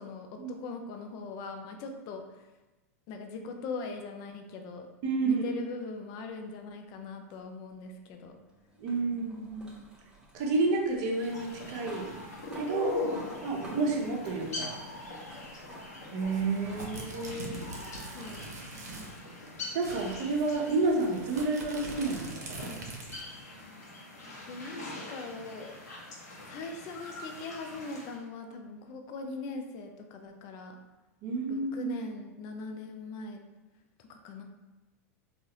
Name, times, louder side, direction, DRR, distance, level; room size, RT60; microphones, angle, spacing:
voice 1, 0.0-2.2 3.1-4.9 5.2-8.3 18.1-19.1 24.5-24.8 25.1-25.7 26.5-30.8 31.5-33.4 34.0-34.4, left 4 dB, 45° left, 5 dB, 0.5 m, -41 dB
voice 2, 5.0-5.4 8.8-9.8 10.3-12.1 12.5-13.0 13.4-14.8 16.1-17.6 19.7-22.7 31.2-31.9, right 3 dB, 50° right, 1 dB, 0.8 m, -30 dB
sound 1, 7.3-16.2 16.7-16.9 18.2-18.3 21.2-21.3, right 1 dB, 10° right, 0.8 m, -52 dB
sound 2, 11.1-28.2, left 2 dB, 90° left, 1.0 m, -42 dB
sound 3, 16.2-19.2 19.5-19.6 19.8-23.3, right 2 dB, 80° right, 0.7 m, -43 dB
3.9 x 2.5 x 3.0 m, 1.1 s
hypercardioid pair, 105°, 9 cm